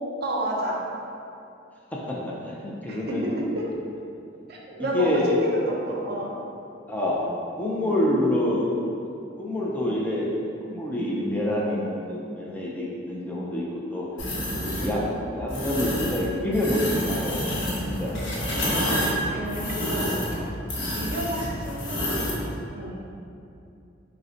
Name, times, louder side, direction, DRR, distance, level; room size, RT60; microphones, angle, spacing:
voice 1, 0.2-0.8 2.9-3.7 4.5-6.3 14.5-14.7 19.3-20.5 20.9-22.4 22.7-23.0, right 1 dB, 55° right, -2 dB, 0.5 m, -31 dB
voice 2, 1.9-3.3 4.8-5.4 6.9-7.2 7.6-8.7 9.4-10.3 10.6-13.7 13.9-14.1 14.6-15.1 15.3-18.5, left 1 dB, 10° left, -5 dB, 0.4 m, -27 dB
sound 1, 14.2-14.9 15.5-16.2 16.5-22.4, equal, 75° left, 0.7 m, -28 dB
5.0 x 2.1 x 2.7 m, 2.6 s
head